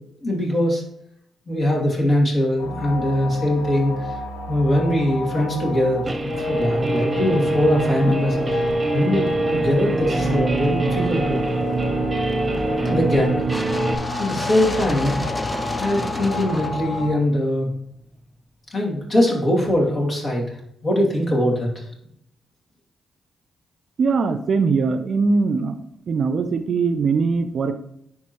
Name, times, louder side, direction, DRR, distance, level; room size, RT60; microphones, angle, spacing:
voice 1, 0.2-0.8 1.5-4.1 4.5-8.7 8.9-11.5 12.8-13.4 14.2-15.2 15.8-17.7 18.7-20.6 20.8-21.9, left 1 dB, 50° left, -2 dB, 2.6 m, -21 dB
sound 1, 2.6-17.1, left 3 dB, 85° left, 0.8 m, -31 dB
Guitar, 6.1-14.0, right 2 dB, 30° right, 0.9 m, -24 dB
sound 2, 10.1-18.1, left 1 dB, 20° left, 0.6 m, -32 dB
voice 2, 24.0-25.8 26.1-27.7, right 4 dB, 60° right, 10 dB, 0.5 m, -21 dB
10.5 x 3.7 x 3.0 m, 0.72 s
hypercardioid pair, 45°, 0 cm